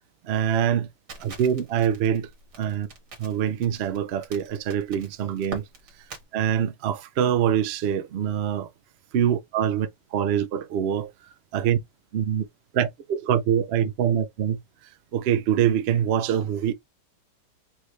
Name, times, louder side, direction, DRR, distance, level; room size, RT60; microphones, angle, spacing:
voice 1, 0.2-0.9 1.2-2.3 2.6-2.9 3.2-5.6 6.3-8.7 9.1-11.1 11.5-11.8 12.1-12.4 12.7-14.6 15.1-16.7, right 9 dB, 85° right, 0.5 m, -24 dB
Crackle, 1.1-6.2, right 4 dB, 70° right, 2.2 m, -43 dB
4.6 x 3.2 x 3.2 m
omnidirectional pair, 1.9 m